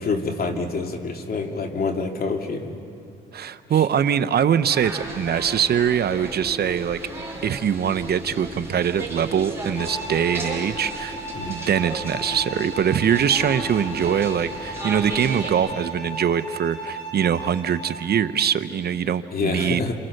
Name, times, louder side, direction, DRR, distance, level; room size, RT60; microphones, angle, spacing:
voice 1, 0.0-2.8 3.7-3.8 11.3-11.6 19.3-19.9, left 4 dB, 50° left, 3 dB, 2.8 m, -27 dB
voice 2, 3.3-7.0 7.4-11.2 11.5-19.9, right 8 dB, 55° right, 12 dB, 0.8 m, -23 dB
sound 1, 4.7-15.5, right 1 dB, 15° right, 6.7 m, -35 dB
Bowed string instrument, 9.8-18.1, right 1 dB, 65° left, 7.9 m, -36 dB
28.5 x 27.0 x 6.6 m, 2.6 s
cardioid pair, 90°, 20 cm